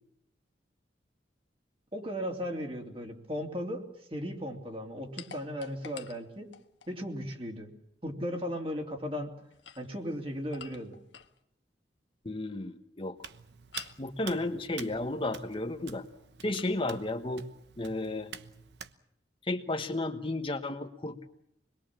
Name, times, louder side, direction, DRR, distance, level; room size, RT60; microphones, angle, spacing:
voice 1, 1.9-3.8 4.1-6.5 6.9-7.7 8.0-9.3 9.8-11.0, equal, 30° right, 2 dB, 3.0 m, -36 dB
sound 1, 5.2-7.0 9.4-11.4 13.7-14.1 16.5-16.8, left 8 dB, 90° left, 1.5 m, -49 dB
voice 2, 12.2-13.2 14.0-16.0 16.4-17.4 17.8-18.3 19.5-21.3, left 2 dB, 30° left, 5 dB, 1.3 m, -33 dB
Hands, 13.2-18.9, right 7 dB, 70° right, 1.1 m, -47 dB
26.0 x 21.5 x 7.4 m, 0.77 s
head